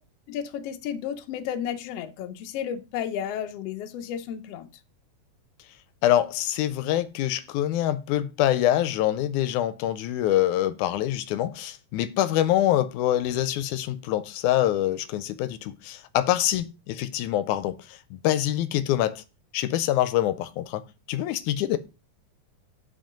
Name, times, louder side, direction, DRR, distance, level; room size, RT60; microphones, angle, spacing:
voice 1, 0.3-4.7, left 9 dB, 65° left, 1.7 m, -32 dB
voice 2, 6.0-19.2 19.5-20.8 21.1-21.8, left 12 dB, 85° left, 2.1 m, -25 dB
7.8 x 5.6 x 5.1 m
omnidirectional pair, 3.4 m